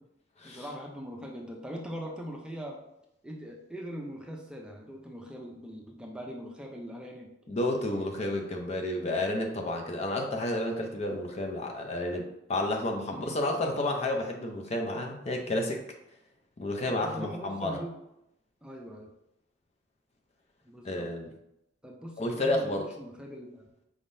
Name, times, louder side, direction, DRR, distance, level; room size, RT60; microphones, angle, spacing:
voice 1, 0.4-2.8 3.2-7.3 13.1-13.3 16.9-17.9 18.6-19.1 20.7-21.4 21.8-23.7, equal, 5° right, 0 dB, 0.6 m, -41 dB
voice 2, 7.5-15.8 16.6-17.8 20.8-21.3 22.2-22.8, left 1 dB, 35° left, 2 dB, 0.6 m, -31 dB
4.9 x 3.7 x 2.6 m, 0.83 s
head